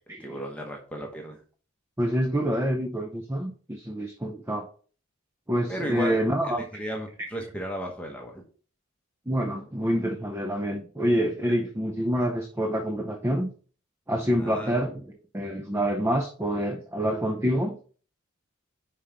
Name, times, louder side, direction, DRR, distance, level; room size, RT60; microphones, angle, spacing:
voice 1, 0.2-1.4 5.7-8.4 14.4-14.7, equal, 5° left, 0 dB, 1.0 m, -35 dB
voice 2, 2.0-4.7 5.5-6.6 9.3-13.5 14.1-15.0 15.3-17.8, equal, 10° right, 5 dB, 0.6 m, -27 dB
5.5 x 5.0 x 5.6 m, 0.41 s
head